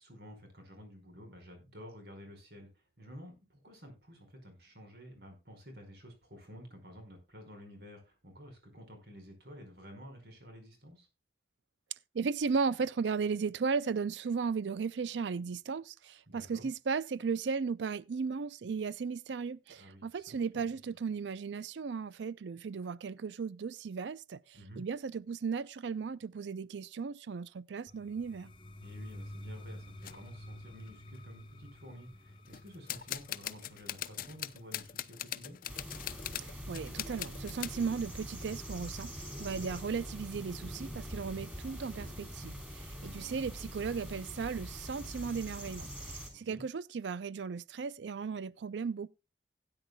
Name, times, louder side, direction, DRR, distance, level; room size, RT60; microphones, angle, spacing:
voice 1, 0.0-11.1 16.3-16.7 19.7-20.0 20.5-20.8 24.5-24.8 28.8-35.6 39.4-39.7 42.8-43.4 46.3-46.6, equal, 65° right, 4.9 m, -51 dB
voice 2, 12.1-28.5 36.4-39.1 39.4-49.1, right 5 dB, 90° right, 0.4 m, -36 dB
sound 1, 27.9-37.7, left 1 dB, 30° left, 1.0 m, -51 dB
sound 2, 28.9-29.2 30.0-30.2 30.9-31.0 31.1-31.6 32.5-37.8, left 11 dB, 50° left, 0.6 m, -41 dB
sound 3, 35.7-46.3, equal, 10° right, 3.2 m, -44 dB
17.0 x 9.7 x 2.3 m
head